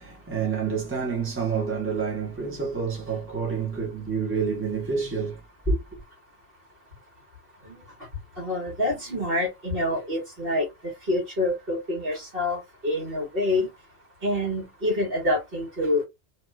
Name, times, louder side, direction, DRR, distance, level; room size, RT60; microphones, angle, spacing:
voice 1, 0.0-5.4 5.7-6.0, right 5 dB, 10° right, 1.1 m, -28 dB
voice 2, 8.4-10.7 11.1-13.7 14.2-16.0, left 1 dB, 55° right, 2.0 m, -26 dB
3.0 x 2.9 x 2.3 m
omnidirectional pair, 1.2 m